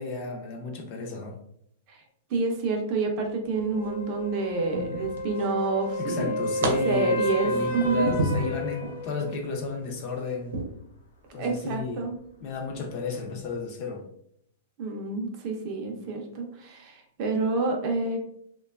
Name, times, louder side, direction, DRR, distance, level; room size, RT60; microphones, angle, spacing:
voice 1, 0.0-1.4 6.0-10.6 11.3-12.0 12.4-14.0, left 3 dB, 35° left, 2 dB, 0.4 m, -33 dB
voice 2, 2.3-6.4 6.8-8.1 11.4-12.2 14.8-18.2, right 3 dB, 30° right, 2 dB, 0.4 m, -28 dB
sound 1, 3.5-4.0 4.7-5.6 6.0-6.7 7.2-9.0 9.5-9.7 10.5-10.6, right 2 dB, 80° right, 0.6 m, -31 dB
sound 2, 3.7-9.4 13.5-13.6, left 1 dB, 90° left, 0.6 m, -30 dB
2.8 x 2.2 x 2.3 m, 0.72 s
supercardioid pair, 175°, 0 cm